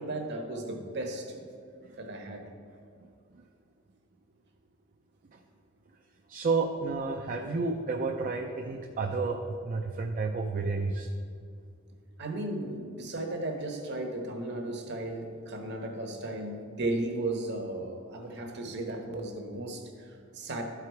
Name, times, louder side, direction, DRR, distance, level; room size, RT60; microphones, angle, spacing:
voice 1, 0.0-1.4 2.0-2.4 12.2-20.6, right 2 dB, 55° right, 3 dB, 1.1 m, -35 dB
voice 2, 6.3-11.1, right 4 dB, 40° right, 3 dB, 0.4 m, -31 dB
12.0 x 4.8 x 4.7 m, 2.3 s
head